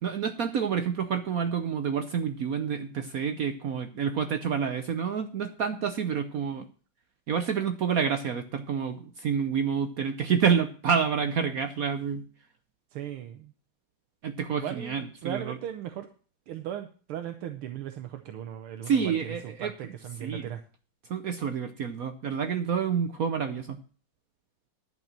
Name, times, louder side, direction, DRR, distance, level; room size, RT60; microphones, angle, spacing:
voice 1, 0.0-6.6 7.3-12.2 14.2-15.6 18.8-19.7 20.2-20.5 21.1-23.8, right 7 dB, 65° right, 9 dB, 0.9 m, -28 dB
voice 2, 12.9-13.5 14.6-16.1 16.5-20.6, right 10 dB, 85° right, 6 dB, 1.8 m, -38 dB
11.0 x 5.9 x 7.3 m, 0.40 s
omnidirectional pair, 2.3 m